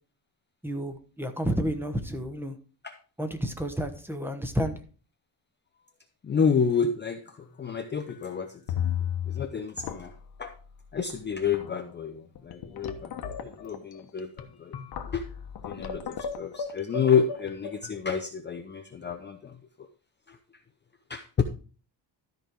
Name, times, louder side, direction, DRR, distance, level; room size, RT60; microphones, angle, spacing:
voice 1, 0.6-2.6 3.2-4.8, equal, 5° right, 0.9 m, -30 dB
voice 2, 6.2-7.2 7.6-8.5 9.3-10.1 10.4-10.5 10.9-14.3 14.6-14.7 15.1-15.2 15.6-16.0 16.4-19.4 21.1-21.4, left 6 dB, 25° left, 0.6 m, -28 dB
sound 1, 7.4-7.8 8.1-8.2 8.7-9.5 9.8-10.3 11.1-11.2 11.5-11.8 12.3-17.9, left 8 dB, 55° left, 1.2 m, -34 dB
13.0 x 5.3 x 4.5 m
cardioid pair, 165°, 45 cm